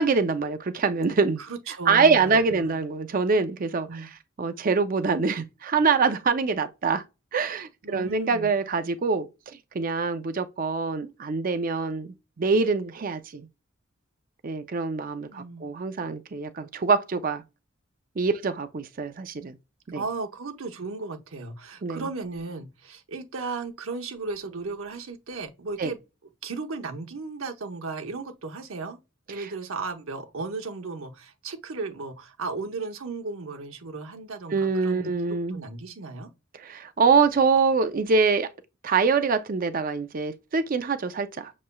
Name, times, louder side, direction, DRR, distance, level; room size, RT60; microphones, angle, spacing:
voice 1, 0.0-1.4 1.9-4.1 4.4-7.0 7.3-9.3 9.7-13.5 14.4-17.4 18.2-19.6 19.9-20.0 21.8-22.0 25.8-25.9 34.5-35.6 36.6-38.5 38.8-41.5, right 4 dB, 45° right, 0.5 m, -24 dB
voice 2, 1.4-2.9 3.9-4.1 7.8-8.5 15.3-15.6 19.9-26.0 26.4-29.0 29.3-36.3, right 3 dB, 90° right, 0.9 m, -35 dB
6.6 x 3.0 x 2.2 m
head